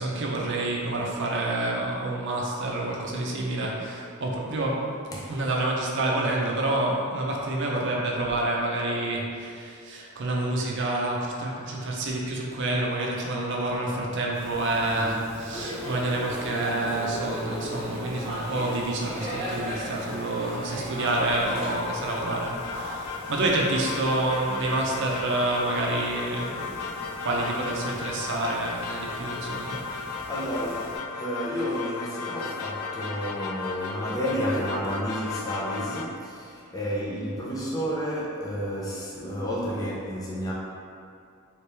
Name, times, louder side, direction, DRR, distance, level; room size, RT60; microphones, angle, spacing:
voice 1, 0.0-4.9 5.3-26.9 27.2-29.8, right 2 dB, 60° right, -2 dB, 0.6 m, -28 dB
sound 1, 14.3-31.0, left 1 dB, 45° left, 0.8 m, -45 dB
voice 2, 14.9-15.2 29.9-40.5, equal, 15° left, -5 dB, 0.4 m, -31 dB
sound 2, 15.5-21.7, equal, 30° right, 0.8 m, -35 dB
sound 3, 21.1-36.1, left 4 dB, 85° left, 0.3 m, -35 dB
3.2 x 3.0 x 3.3 m, 2.3 s
head